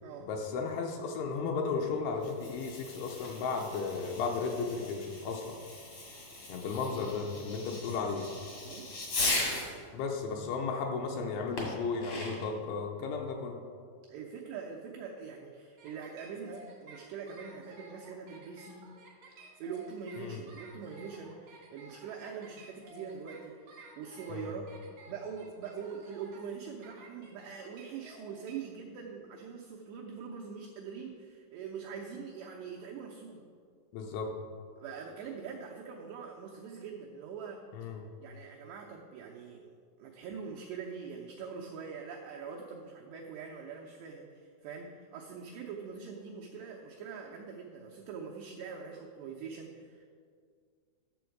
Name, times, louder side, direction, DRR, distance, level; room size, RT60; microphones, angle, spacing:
voice 1, 0.3-5.6 6.5-8.3 9.9-13.6 20.2-20.4 33.9-34.3 37.7-38.0, left 4 dB, 80° left, 2 dB, 2.9 m, -34 dB
Fireworks, 2.1-9.8 11.6-12.6, left 2 dB, 65° left, 1.3 m, -38 dB
voice 2, 14.1-18.9 19.6-24.7 25.1-33.4 34.8-37.6 38.2-39.7 40.0-50.1, right 6 dB, 85° right, -1 dB, 2.4 m, -43 dB
sound 1, 15.8-28.5, right 3 dB, 65° right, 1.4 m, -54 dB
11.5 x 7.1 x 4.6 m, 2.1 s
omnidirectional pair, 5.7 m